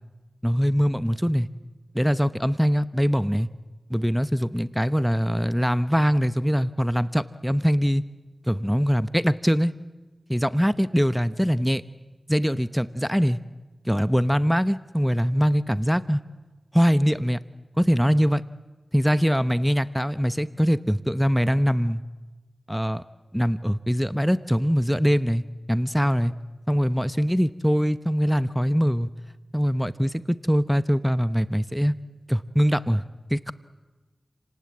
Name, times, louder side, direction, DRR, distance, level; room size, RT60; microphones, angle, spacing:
voice 1, 0.4-1.5 1.9-3.5 3.9-8.0 8.5-9.7 10.3-11.8 12.3-13.4 13.9-16.2 16.7-17.4 17.8-18.4 18.9-22.0 22.7-23.0 23.3-26.3 26.7-29.1 29.5-32.0 32.3-33.0 33.3-33.5, equal, ahead, 14 dB, 0.8 m, -22 dB
30.0 x 18.5 x 8.6 m, 1.2 s
cardioid pair, 40°, 0 cm